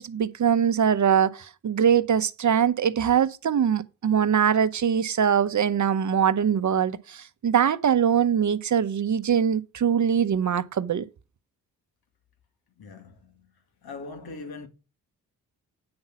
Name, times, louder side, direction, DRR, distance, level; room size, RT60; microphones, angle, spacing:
voice 1, 0.0-11.1, right 8 dB, 45° right, 0.8 m, -22 dB
voice 2, 12.8-13.5 13.8-14.7, left 3 dB, 65° left, 2.1 m, -41 dB
8.7 x 5.5 x 5.9 m
supercardioid pair, 45°, 41 cm